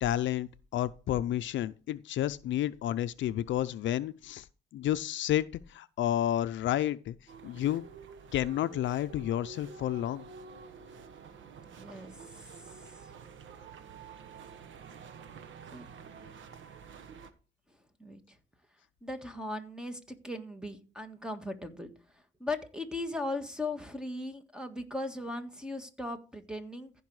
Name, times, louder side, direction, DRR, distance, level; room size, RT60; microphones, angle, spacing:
voice 1, 0.0-4.5 4.7-7.1 7.4-7.8 8.3-10.2, left 12 dB, 70° left, 0.5 m, -31 dB
sound 1, 7.3-17.3, right 6 dB, 70° right, 1.3 m, -49 dB
voice 2, 11.6-12.1 12.8-13.1 15.7-15.9 18.0-18.2 19.0-21.9 22.4-26.9, left 2 dB, 5° right, 1.6 m, -38 dB
14.5 x 5.3 x 4.8 m
cardioid pair, 90°, 20 cm